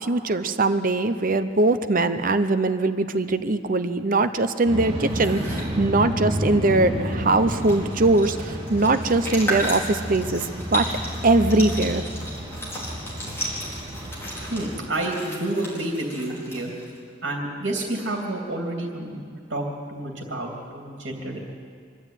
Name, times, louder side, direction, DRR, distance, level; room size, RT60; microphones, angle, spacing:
voice 1, 0.0-10.9 11.2-12.0, right 2 dB, 45° right, 10 dB, 0.8 m, -21 dB
sound 1, 4.6-14.8, equal, 30° right, 3.1 m, -31 dB
sound 2, 5.1-5.7 7.1-7.2 7.4-17.0, equal, 15° left, 4.6 m, -34 dB
voice 2, 14.5-16.7 17.2-19.2 19.5-21.5, right 1 dB, 65° right, 0 dB, 3.0 m, -29 dB
25.0 x 12.5 x 9.1 m, 2.1 s
head